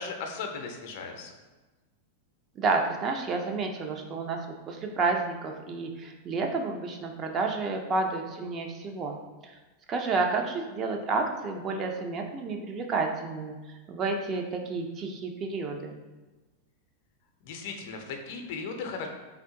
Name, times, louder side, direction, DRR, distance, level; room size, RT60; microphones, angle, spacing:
voice 1, 0.0-1.3 17.4-19.1, left 4 dB, 50° left, 4 dB, 0.5 m, -37 dB
voice 2, 2.6-9.2 9.4-9.5 9.9-13.6 13.9-15.9, right 3 dB, 30° right, 3 dB, 0.4 m, -30 dB
3.4 x 2.4 x 3.6 m, 1.2 s
figure-of-eight pair, 90°, 0 cm